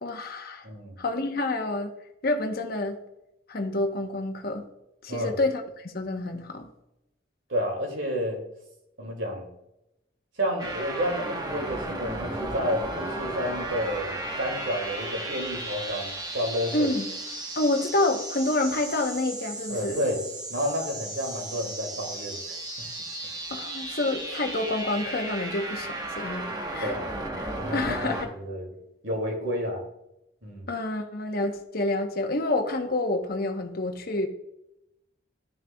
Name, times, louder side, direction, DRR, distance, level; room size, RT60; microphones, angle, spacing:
voice 1, 0.0-0.7 1.0-1.9 2.2-3.0 3.5-4.6 5.0-6.7 16.7-17.1 17.6-20.0 23.5-26.9 27.4-28.3 30.7-34.3, left 2 dB, 55° left, 4 dB, 0.9 m, -28 dB
voice 2, 0.6-1.0 5.1-5.4 7.5-8.4 9.0-9.5 10.4-16.9 19.7-20.2 20.5-22.9 26.8-27.1 27.6-28.7 29.0-29.8 30.4-30.7, equal, 85° right, 2 dB, 2.4 m, -30 dB
sound 1, 10.6-28.2, right 2 dB, 20° right, 1.0 m, -35 dB
13.0 x 6.6 x 2.3 m, 0.86 s
head